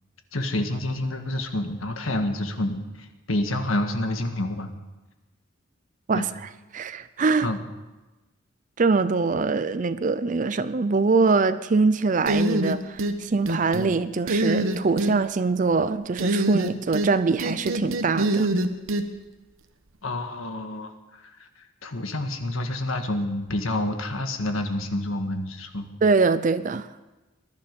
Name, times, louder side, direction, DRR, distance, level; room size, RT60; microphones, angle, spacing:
voice 1, 0.3-4.7 6.1-6.3 7.4-7.6 20.0-25.9, left 1 dB, 90° left, 1.7 m, -28 dB
voice 2, 6.7-7.5 8.8-18.5 26.0-26.9, right 4 dB, 40° right, 0.5 m, -23 dB
sound 1, 12.3-13.2 13.5-13.9 14.3-15.1 16.2-17.1 17.4-19.0, right 1 dB, 80° right, 1.1 m, -24 dB
21.0 x 11.5 x 5.3 m
head